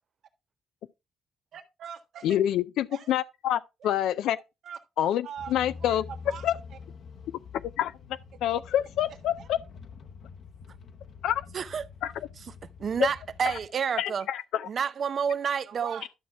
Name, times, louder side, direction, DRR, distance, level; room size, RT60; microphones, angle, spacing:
voice 1, 1.5-2.4 2.9-3.1 3.8-3.9 4.6-4.8 5.2-5.5 5.8-6.4 9.4-9.5 15.6-16.1, right 8 dB, 70° right, 1.5 m, -42 dB
voice 2, 2.2-4.4 5.0-6.0 6.4-6.6 7.8-7.9 8.4-9.6 11.2-11.4 12.0-12.1 13.0-13.1 13.5-13.6 14.0-14.7, left 11 dB, 85° left, 0.4 m, -27 dB
sound 1, 5.4-13.7, left 5 dB, 60° left, 1.0 m, -46 dB
voice 3, 11.5-11.9 12.8-14.3 14.7-16.0, right 7 dB, 50° right, 0.6 m, -29 dB
11.5 x 5.8 x 3.5 m
cardioid pair, 90°, 0 cm